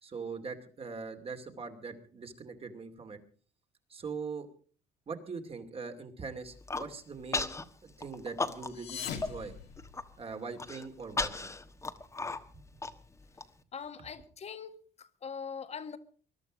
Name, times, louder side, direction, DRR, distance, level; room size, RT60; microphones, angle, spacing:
voice 1, 0.0-3.2 3.9-4.5 5.1-7.5 7.8-9.5 10.2-11.5 12.2-12.3, right 4 dB, 35° right, 6 dB, 2.5 m, -42 dB
Human voice, 6.4-6.9 7.3-7.6 8.0-8.9 9.2-9.3 9.7-10.0 10.6-13.4, left 3 dB, 15° left, 1.3 m, -35 dB
sound 1, 8.6-10.5, left 8 dB, 85° left, 2.3 m, -42 dB
voice 2, 13.7-14.7 15.0-16.0, left 6 dB, 40° left, 10 dB, 1.6 m, -42 dB
21.0 x 12.0 x 5.1 m, 0.42 s
cardioid pair, 110°, 17 cm